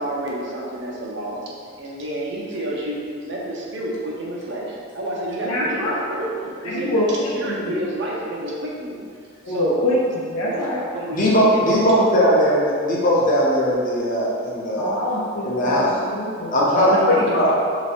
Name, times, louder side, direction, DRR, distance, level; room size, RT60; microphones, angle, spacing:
voice 1, 0.0-1.4 1.8-6.3 6.6-9.0 9.5-9.8 10.4-10.6 10.9-11.9 16.7-17.5, right 1 dB, 55° right, -4 dB, 0.7 m, -29 dB
voice 2, 5.4-6.0 6.6-7.8 9.4-10.0 10.2-10.9 14.8-17.2, left 1 dB, 90° left, -7 dB, 0.7 m, -25 dB
voice 3, 11.1-14.9 15.4-15.9 16.5-17.5, equal, 40° left, -5 dB, 0.8 m, -19 dB
3.3 x 2.9 x 4.3 m, 2.2 s
head